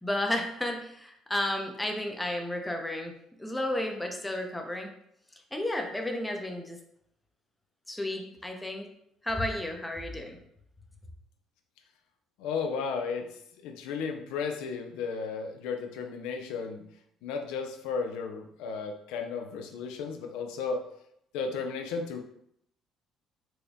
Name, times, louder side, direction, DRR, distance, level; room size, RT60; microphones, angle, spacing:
voice 1, 0.0-3.1 3.4-4.9 5.5-6.8 7.9-8.9 9.2-10.4, left 1 dB, 10° left, 3 dB, 0.6 m, -32 dB
voice 2, 12.4-13.3 13.6-16.8 17.2-20.8 21.3-22.2, left 5 dB, 85° left, 5 dB, 0.4 m, -34 dB
4.0 x 2.2 x 3.5 m, 0.73 s
cardioid pair, 95°, 0 cm